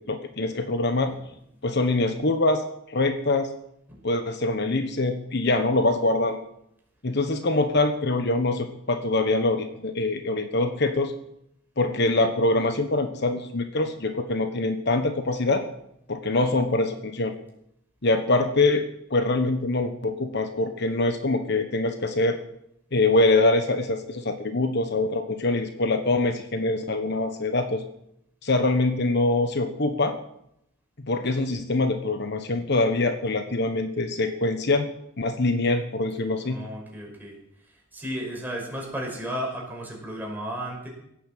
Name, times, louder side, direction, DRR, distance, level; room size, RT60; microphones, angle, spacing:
voice 1, 0.1-1.1 1.6-3.5 4.0-6.4 7.0-11.1 11.8-15.6 16.1-17.3 18.0-18.8 19.1-22.4 22.9-27.8 28.4-30.1 31.0-34.9 35.2-36.6, left 2 dB, 55° left, 8 dB, 1.2 m, -24 dB
voice 2, 36.4-37.4 37.7-40.9, equal, 10° right, -1 dB, 5.5 m, -34 dB
17.0 x 10.0 x 7.5 m, 0.77 s
head